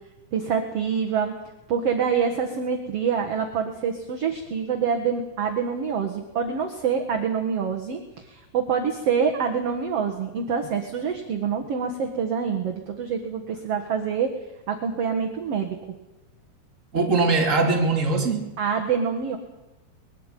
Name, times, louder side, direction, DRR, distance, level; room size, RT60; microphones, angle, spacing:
voice 1, 0.3-1.3 1.7-14.3 14.7-15.8 18.6-19.4, right 6 dB, 55° right, 3 dB, 1.9 m, -26 dB
voice 2, 16.9-18.5, right 3 dB, 20° right, 1 dB, 2.6 m, -21 dB
21.5 x 13.0 x 9.2 m, 1.1 s
omnidirectional pair, 4.5 m